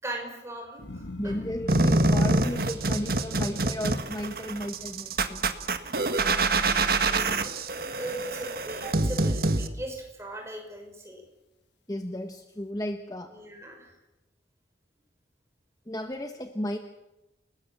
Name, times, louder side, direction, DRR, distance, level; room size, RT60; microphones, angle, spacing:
voice 1, 0.0-1.4 6.7-7.5 8.0-11.2 13.3-13.9, right 1 dB, 15° right, 2 dB, 6.0 m, -39 dB
sound 1, 0.8-7.1 7.5-8.1, left 2 dB, 75° left, 1.7 m, -44 dB
voice 2, 1.2-5.5 11.9-13.3 15.9-16.8, equal, 20° left, 6 dB, 1.1 m, -34 dB
sound 2, 1.7-9.7, right 2 dB, 55° right, 1.6 m, -25 dB
29.5 x 19.5 x 7.4 m, 0.99 s
head